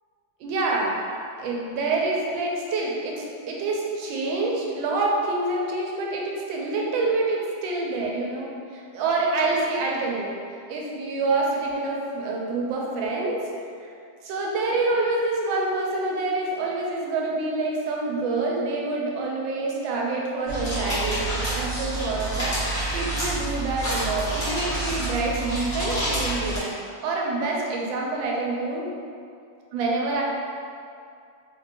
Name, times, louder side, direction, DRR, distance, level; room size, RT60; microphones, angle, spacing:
voice 1, 0.4-1.0 1.4-10.4 10.7-13.4 14.2-22.5 22.9-28.9 29.7-30.2, right 3 dB, 90° right, -2 dB, 1.3 m, -27 dB
sound 1, 20.5-26.6, right 1 dB, 40° left, 1.1 m, -28 dB
3.8 x 2.6 x 2.7 m, 2.4 s
omnidirectional pair, 2.0 m